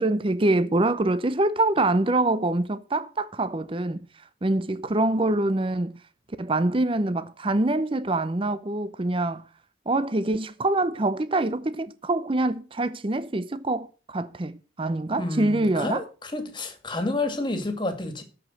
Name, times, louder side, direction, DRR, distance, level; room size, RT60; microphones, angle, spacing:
voice 1, 0.0-4.0 4.4-5.9 6.4-9.5 9.9-16.1, right 2 dB, 30° right, 0.6 m, -25 dB
voice 2, 15.2-18.2, left 2 dB, 25° left, 2.1 m, -30 dB
13.0 x 5.1 x 7.7 m
head